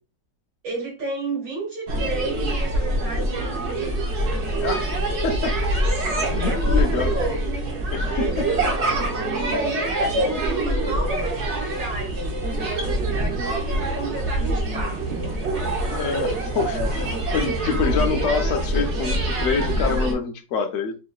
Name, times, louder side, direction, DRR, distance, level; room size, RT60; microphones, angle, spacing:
voice 1, 0.6-4.1 6.4-15.3, right 3 dB, 70° right, 2.7 m, -32 dB
sound 1, 1.9-20.1, right 1 dB, 50° right, 0.9 m, -24 dB
voice 2, 5.2-5.5 6.3-7.1 7.9-8.3 15.9-21.0, left 5 dB, 80° left, 0.6 m, -26 dB
5.4 x 2.9 x 2.3 m
omnidirectional pair, 2.1 m